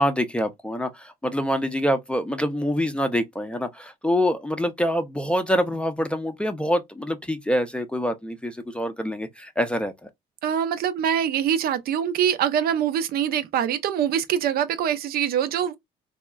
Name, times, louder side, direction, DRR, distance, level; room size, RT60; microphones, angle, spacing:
voice 1, 0.0-10.1, equal, 5° left, 0.5 m, -25 dB
voice 2, 10.4-15.8, right 9 dB, 65° right, 0.5 m, -24 dB
3.6 x 2.0 x 2.2 m
cardioid pair, 110°, 17 cm